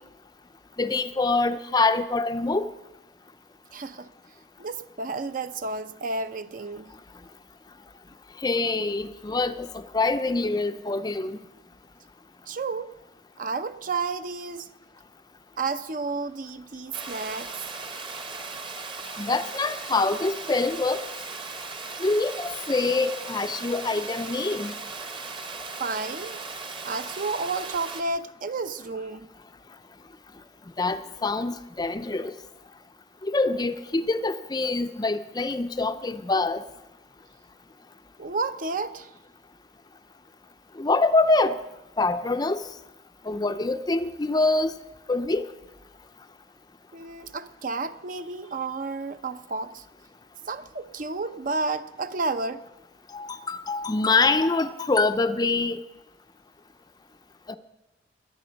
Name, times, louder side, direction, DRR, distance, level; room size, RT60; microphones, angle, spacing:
voice 1, 0.8-2.7 8.4-11.4 19.2-21.0 22.0-24.7 30.8-32.3 33.2-36.6 40.8-41.6 42.0-42.6 43.2-44.7 45.1-45.5 53.1-55.8 57.5-57.6, left 3 dB, 20° left, 0.5 m, -25 dB
voice 2, 3.7-4.1 4.6-6.9 12.5-13.0 13.4-14.7 15.6-17.6 25.8-26.4 26.8-29.3 38.2-39.1 46.9-49.8 50.5-52.6, right 3 dB, 45° right, 0.6 m, -31 dB
Water, 16.9-28.0, right 3 dB, 30° right, 1.0 m, -37 dB
21.0 x 7.8 x 5.2 m
head